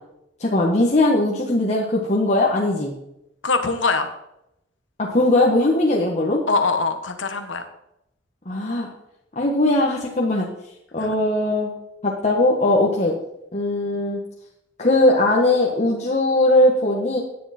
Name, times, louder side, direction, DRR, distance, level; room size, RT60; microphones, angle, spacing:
voice 1, 0.4-2.9 5.0-6.4 8.4-8.9 9.3-10.5 10.9-11.7 12.0-13.1 13.5-14.2 14.8-17.2, left 1 dB, 40° left, -2 dB, 1.7 m, -19 dB
voice 2, 3.4-4.1 6.5-7.7 11.0-11.1, left 3 dB, 85° left, 7 dB, 1.6 m, -22 dB
17.0 x 10.0 x 4.5 m, 0.84 s
head